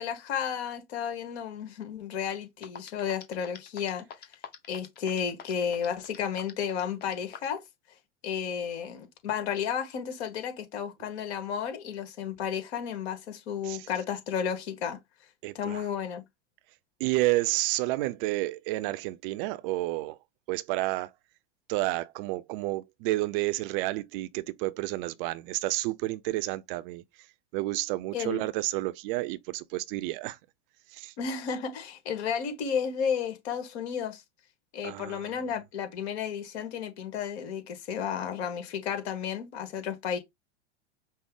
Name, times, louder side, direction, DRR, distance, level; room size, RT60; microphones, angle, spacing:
voice 1, 0.0-4.0 4.7-7.6 8.2-15.0 15.5-16.2 28.1-28.4 31.2-34.2 34.7-40.2, left 7 dB, 65° left, 1.5 m, -32 dB
sound 1, 2.3-2.4 2.6-7.6, left 7 dB, 30° left, 0.8 m, -44 dB
voice 2, 15.4-15.9 17.0-20.2 20.5-21.1 21.7-27.0 27.5-30.4 30.9-31.1 34.8-35.3, right 19 dB, 50° right, 0.5 m, -30 dB
5.3 x 2.0 x 3.6 m
hypercardioid pair, 100°, 34 cm